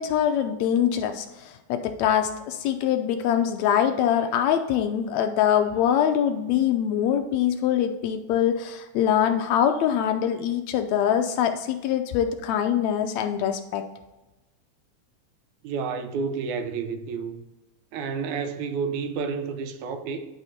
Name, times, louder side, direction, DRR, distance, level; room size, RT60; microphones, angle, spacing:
voice 1, 0.0-13.9, left 9 dB, 80° left, 1.7 m, -24 dB
voice 2, 15.6-17.4 17.9-20.3, right 5 dB, 80° right, 2.0 m, -30 dB
10.5 x 3.5 x 4.1 m
omnidirectional pair, 3.5 m